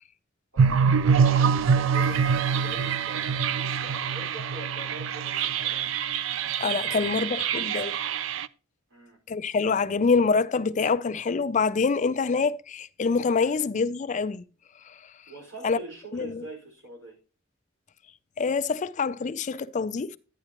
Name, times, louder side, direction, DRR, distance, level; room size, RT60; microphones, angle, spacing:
voice 1, 0.5-5.9 6.8-7.2 8.9-9.2 13.4-13.5 15.3-17.2, right 1 dB, 85° right, 4.7 m, -43 dB
sound 1, 0.6-8.5, right 6 dB, 70° right, 0.4 m, -25 dB
voice 2, 6.6-8.0 9.3-14.4 14.8-15.1 15.6-15.8 16.1-16.4 18.4-20.2, left 4 dB, 35° left, 0.4 m, -26 dB
11.0 x 9.7 x 2.9 m
head